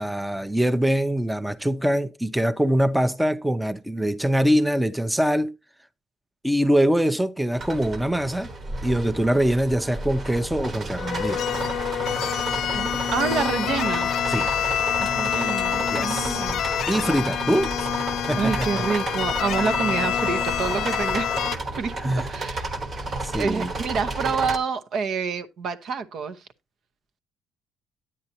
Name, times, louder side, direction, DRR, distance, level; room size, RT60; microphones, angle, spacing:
voice 1, 0.0-5.5 6.4-8.5 8.8-11.4 14.3-14.5 15.9-16.4 16.9-17.9 18.3-18.8 22.0-22.3 23.2-23.7, equal, 5° right, 0.6 m, -23 dB
Disney's Big Thunder Mountain Railroad A, 7.6-24.6, right 2 dB, 45° right, 1.3 m, -32 dB
sound 1, 11.0-21.6, left 10 dB, 70° left, 0.4 m, -27 dB
voice 2, 12.7-14.2 15.0-16.6 18.4-21.5 21.8-22.7 23.3-26.4, right 5 dB, 65° right, 0.9 m, -28 dB
9.6 x 8.6 x 2.8 m
supercardioid pair, 70°, 0 cm